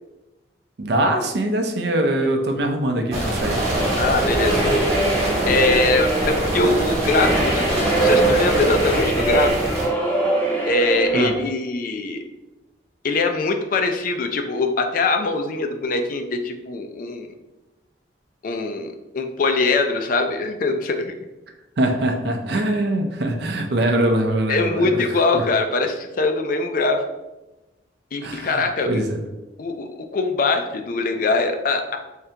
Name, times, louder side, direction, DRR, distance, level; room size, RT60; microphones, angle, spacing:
voice 1, 0.8-3.6 11.1-11.3 21.8-25.1 25.3-25.4 28.2-29.2, right 1 dB, 60° right, 3 dB, 0.5 m, -22 dB
sound 1, 3.1-9.9, right 1 dB, 35° right, 1.2 m, -23 dB
sound 2, 3.7-11.5, right 2 dB, 10° left, 0.6 m, -23 dB
voice 2, 4.0-4.6 5.5-9.6 10.7-12.2 13.0-17.3 18.4-21.1 24.5-27.0 28.1-29.0 29.6-32.0, left 3 dB, 45° left, 6 dB, 0.4 m, -22 dB
3.6 x 3.2 x 2.8 m, 1.0 s
head